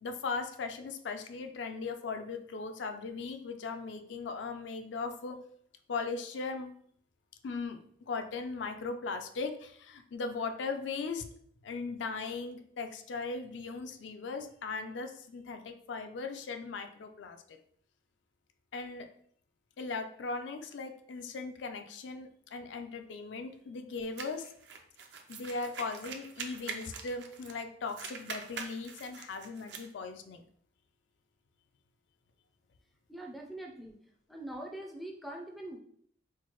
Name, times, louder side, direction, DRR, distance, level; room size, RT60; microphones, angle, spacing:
voice 1, 0.0-5.4 5.9-6.7 7.4-7.8 8.1-11.2 11.6-17.6 18.7-19.1 19.8-24.5 25.3-30.4, left 4 dB, 75° left, 6 dB, 0.4 m, -38 dB
sound 1, 24.2-27.6 27.9-29.9, right 5 dB, 65° right, 0.4 m, -44 dB
voice 2, 33.1-34.0 34.3-35.8, right 1 dB, ahead, 1 dB, 0.3 m, -43 dB
4.4 x 2.0 x 3.0 m, 0.63 s
head